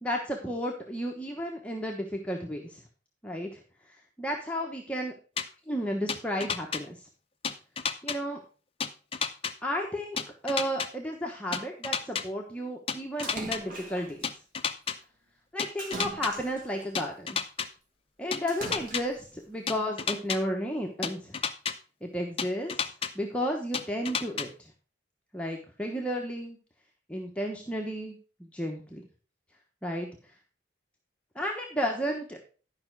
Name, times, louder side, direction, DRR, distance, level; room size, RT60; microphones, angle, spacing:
voice 1, 0.0-2.8 3.2-3.6 4.2-5.1 5.7-7.0 8.0-8.4 9.6-10.2 10.4-14.3 15.5-17.4 18.2-21.3 22.0-22.7 23.1-24.5 25.3-26.6 27.1-29.0 29.8-30.1 31.3-32.4, equal, 5° left, 0 dB, 1.1 m, -33 dB
sound 1, 5.4-5.5 6.1-6.8 7.4-8.2 8.8-9.5 10.2-10.9 11.5-12.2 12.9-13.6 14.2-15.0 15.6-16.3 17.0-17.7 18.3-19.0 19.7-20.4 21.0-21.7 22.4-23.1 23.7-24.5, left 6 dB, 30° left, 0.7 m, -31 dB
Splash splatter, 13.2-14.2 15.8-16.9 18.5-19.3, right 1 dB, 45° right, 2.4 m, -41 dB
11.5 x 5.6 x 4.7 m, 0.37 s
head